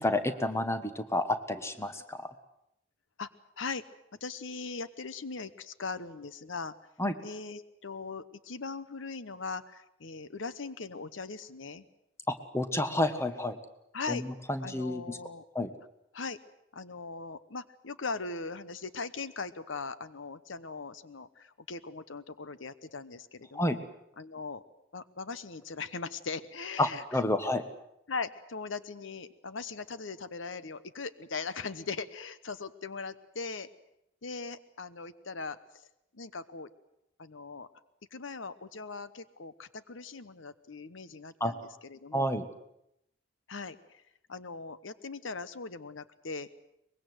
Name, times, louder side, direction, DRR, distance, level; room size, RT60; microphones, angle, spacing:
voice 1, 0.0-2.3 7.0-7.1 12.3-13.6 14.1-14.2 14.5-15.2 15.5-15.7 23.5-23.8 26.8-27.6 41.4-41.5 42.1-42.4, left 1 dB, 15° left, 9 dB, 1.4 m, -30 dB
voice 2, 4.2-6.7 7.2-11.8 13.9-14.2 14.6-15.4 16.1-16.4 16.7-23.8 24.2-24.6 24.9-27.2 28.1-33.7 34.2-35.9 36.1-36.7 37.2-37.7 38.1-42.3 43.5-44.0 44.3-46.5, left 4 dB, 80° left, 14 dB, 1.0 m, -40 dB
23.5 x 21.5 x 7.9 m, 0.81 s
head